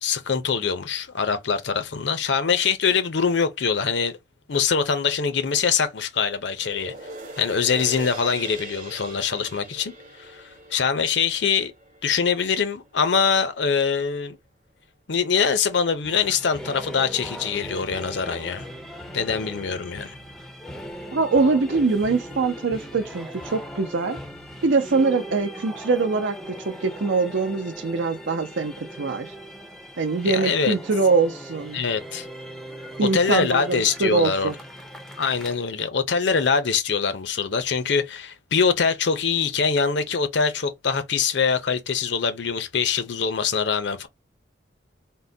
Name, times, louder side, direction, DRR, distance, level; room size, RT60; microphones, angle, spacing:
voice 1, 0.0-4.1 4.5-6.9 7.4-9.9 10.2-11.7 12.0-14.4 15.1-18.7 19.1-20.1 30.2-30.8 31.7-32.3 33.0-34.5 35.2-44.1, left 6 dB, 70° left, 0.6 m, -23 dB
sound 1, 6.6-13.1 13.6-13.7, right 2 dB, 45° right, 0.8 m, -41 dB
sound 2, 16.0-35.5, equal, ahead, 0.4 m, -39 dB
voice 2, 21.1-24.2 24.6-26.6 26.8-29.3 30.0-31.8 33.0-34.6, right 4 dB, 80° right, 0.6 m, -23 dB
3.7 x 2.1 x 2.6 m
head